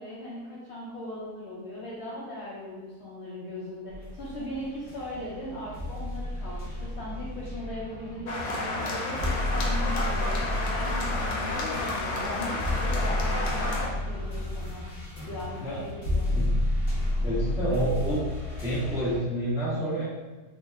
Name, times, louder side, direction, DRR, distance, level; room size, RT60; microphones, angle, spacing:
voice 1, 0.0-14.9 15.3-16.3, left 1 dB, 60° left, -9 dB, 0.7 m, -39 dB
sound 1, 3.9-19.2, left 1 dB, 40° left, 1.0 m, -31 dB
sound 2, 8.3-13.9, left 2 dB, 85° left, 1.2 m, -31 dB
voice 2, 17.2-18.2 18.6-20.0, right 1 dB, 5° right, -10 dB, 0.5 m, -28 dB
2.8 x 2.1 x 3.4 m, 1.2 s
omnidirectional pair, 1.7 m